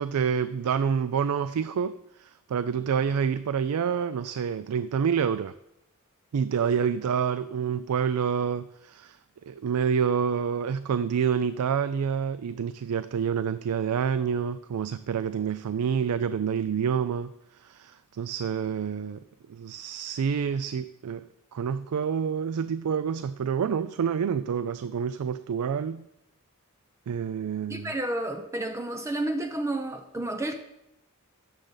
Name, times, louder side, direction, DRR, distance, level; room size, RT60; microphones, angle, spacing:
voice 1, 0.0-5.5 6.3-9.2 9.5-19.2 19.5-26.1 27.1-27.9, right 7 dB, 80° right, 0.4 m, -28 dB
voice 2, 27.7-30.5, right 1 dB, 15° right, 0.5 m, -31 dB
15.0 x 6.7 x 3.9 m
head